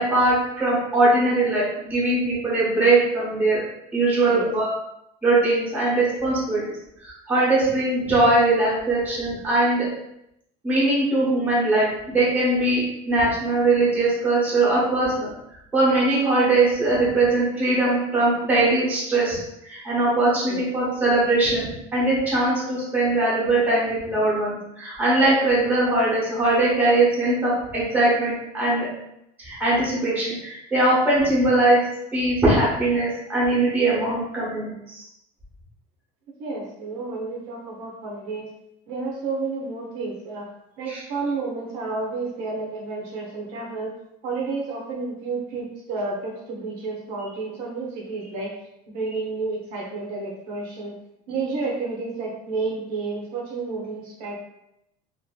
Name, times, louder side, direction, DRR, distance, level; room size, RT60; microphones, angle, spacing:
voice 1, 0.0-3.6 3.9-4.7 5.2-6.6 7.0-9.8 10.6-15.3 15.7-19.4 19.7-28.9 29.4-31.8 32.1-35.0 40.9-41.0, right 2 dB, 10° right, -8 dB, 0.8 m, -21 dB
voice 2, 36.4-38.5 38.9-40.5 40.8-43.9 44.2-48.5 48.9-50.9 51.3-54.3, right 3 dB, 70° right, -2 dB, 0.7 m, -30 dB
2.6 x 2.5 x 2.2 m, 0.81 s
cardioid pair, 170°, 16 cm